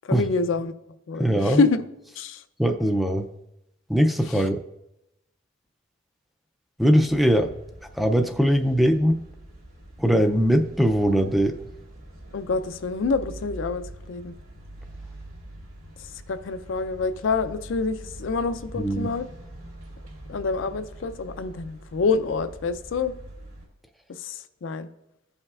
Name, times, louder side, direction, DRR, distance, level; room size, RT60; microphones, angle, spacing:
voice 1, 0.1-0.7 1.1-1.8 2.2-2.4 4.3-4.5 12.3-14.3 16.3-19.3 20.3-23.1 24.1-24.9, left 4 dB, 65° left, 10 dB, 0.4 m, -27 dB
voice 2, 1.2-1.6 2.6-3.3 3.9-4.6 6.8-7.5 8.0-9.2 10.0-11.6 18.8-19.1, equal, ahead, 5 dB, 0.3 m, -21 dB
sound 1, 6.9-23.7, right 1 dB, 75° right, 2.5 m, -44 dB
15.5 x 5.5 x 2.4 m, 0.89 s
head